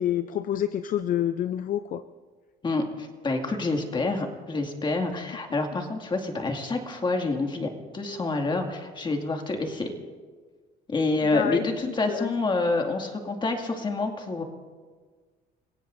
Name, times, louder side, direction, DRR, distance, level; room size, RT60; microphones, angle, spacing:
voice 1, 0.0-2.0 11.2-12.3, left 11 dB, 55° left, 12 dB, 0.5 m, -28 dB
voice 2, 2.6-9.9 10.9-14.4, left 3 dB, 30° left, 3 dB, 2.2 m, -28 dB
29.0 x 17.0 x 2.6 m, 1.5 s
cardioid pair, 110°, 17 cm